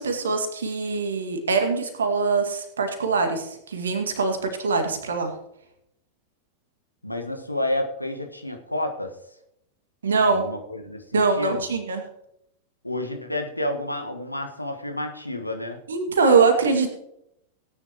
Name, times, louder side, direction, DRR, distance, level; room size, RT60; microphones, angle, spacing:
voice 1, 0.0-5.3 10.0-10.5 11.1-12.0 15.9-16.9, right 4 dB, 70° right, 5 dB, 2.0 m, -23 dB
voice 2, 7.0-9.1 10.3-11.6 12.8-15.8, left 1 dB, 85° left, 5 dB, 1.5 m, -30 dB
18.0 x 10.0 x 3.0 m, 0.79 s
figure-of-eight pair, 90°, 0 cm